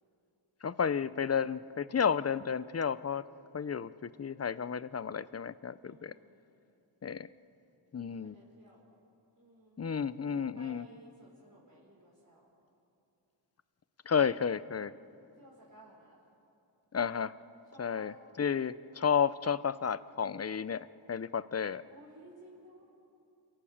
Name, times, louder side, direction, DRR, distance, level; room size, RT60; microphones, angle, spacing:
voice 1, 0.6-3.2 3.5-6.1 7.0-7.3 7.9-8.3 9.8-10.8 14.1-14.9 16.9-17.4 17.8-21.8, left 7 dB, 30° left, 16 dB, 0.7 m, -32 dB
voice 2, 5.8-6.4 8.1-8.8 9.4-9.8 10.3-12.5 15.4-16.2 17.7-18.2 21.8-22.8, right 1 dB, 40° right, -5 dB, 5.3 m, -57 dB
29.0 x 18.0 x 7.3 m, 2.8 s
cardioid pair, 60°, 49 cm